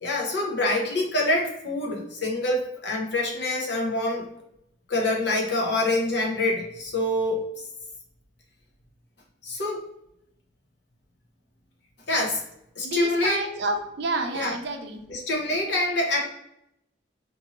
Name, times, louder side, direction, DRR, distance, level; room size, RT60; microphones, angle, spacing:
voice 1, 0.0-4.3 4.9-7.4 9.4-9.8 12.1-12.4 12.8-13.5 14.3-14.6 15.1-16.3, left 2 dB, 60° left, -1 dB, 0.7 m, -26 dB
voice 2, 12.8-15.0, right 3 dB, 60° right, 4 dB, 0.5 m, -29 dB
2.6 x 2.6 x 2.8 m, 0.80 s
head